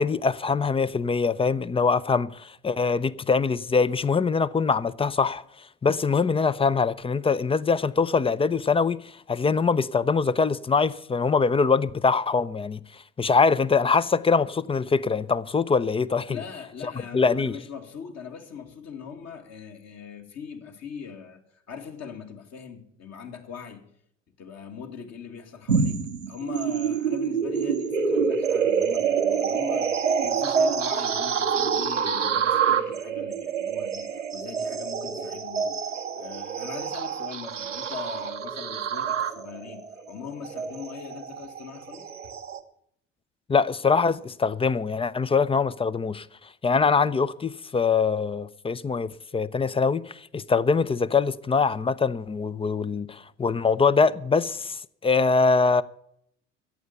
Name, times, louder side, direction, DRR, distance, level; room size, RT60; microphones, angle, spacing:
voice 1, 0.0-5.4 5.8-16.4 17.1-17.6 43.5-46.3 46.6-55.8, left 5 dB, 15° left, 0.6 m, -23 dB
voice 2, 16.3-23.9 24.4-42.1, left 7 dB, 45° left, 2.3 m, -41 dB
sound 1, 25.7-42.6, right 6 dB, 90° right, 0.8 m, -27 dB
14.5 x 8.6 x 8.2 m
figure-of-eight pair, 55°, 36 cm